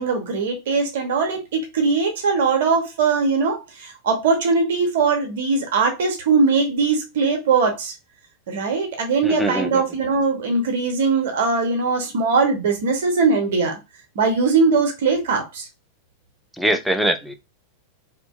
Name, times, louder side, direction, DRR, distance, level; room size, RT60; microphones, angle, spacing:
voice 1, 0.0-7.9 8.5-13.8 14.1-15.7, right 4 dB, 55° right, 0.7 m, -20 dB
voice 2, 9.2-9.8 16.6-17.3, right 1 dB, ahead, 0.4 m, -22 dB
2.6 x 2.5 x 2.3 m
figure-of-eight pair, 90°, 0 cm